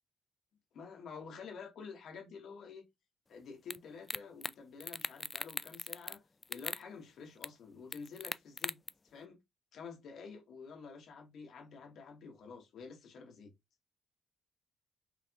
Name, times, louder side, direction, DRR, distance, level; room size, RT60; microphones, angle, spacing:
voice 1, 0.7-2.8 3.3-6.2 6.5-8.8 9.0-9.4 9.7-13.5, left 5 dB, 70° left, 2.0 m, -49 dB
sound 1, 3.7-3.8 4.1-4.5 4.8-6.2 6.4-6.8 7.4-7.5 7.9-8.9, left 3 dB, 25° left, 0.3 m, -39 dB
5.6 x 3.6 x 2.6 m
cardioid pair, 90°, 0 cm